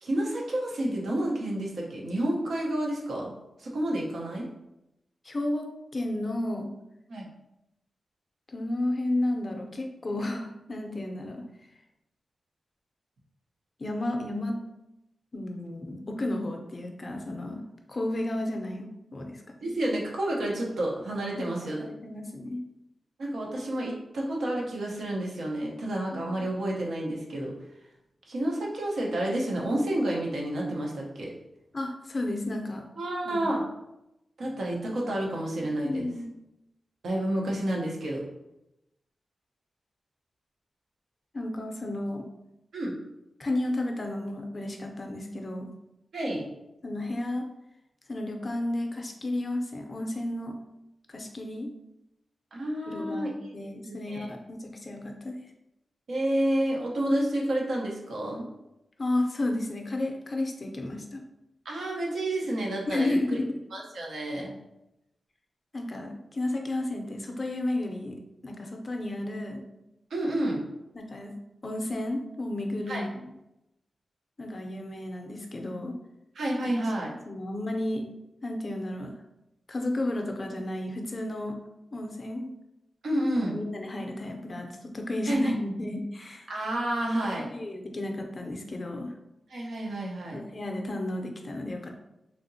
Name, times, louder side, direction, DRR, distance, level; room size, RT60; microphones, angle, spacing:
voice 1, 0.0-3.3 3.6-4.5 7.1-7.3 19.6-21.8 23.2-27.5 28.3-31.3 33.0-33.6 34.4-36.1 37.0-38.2 42.7-42.9 46.1-46.4 52.5-53.3 53.9-54.3 56.1-58.5 61.6-63.4 63.7-64.6 70.1-70.6 72.9-73.0 76.3-77.1 83.0-83.6 85.3-85.5 86.5-87.5 89.5-90.4, right 1 dB, 90° right, -2 dB, 0.8 m, -30 dB
voice 2, 5.2-5.7 5.9-6.7 8.5-11.4 13.8-14.6 15.3-17.6 17.9-19.4 21.4-22.6 26.1-26.4 31.7-32.8 33.2-33.5 35.8-36.3 41.3-42.3 43.4-45.7 46.8-47.5 48.1-50.6 51.1-51.7 52.9-55.4 59.0-61.2 62.9-63.6 65.7-69.6 70.9-71.3 71.6-73.1 74.4-75.9 76.6-76.7 77.3-78.0 78.4-79.1 79.7-81.6 81.9-82.5 83.5-86.5 87.4-89.1 90.3-91.9, left 1 dB, 35° left, 2 dB, 0.5 m, -32 dB
3.4 x 2.8 x 2.7 m, 0.89 s
wide cardioid pair, 135°, 0 cm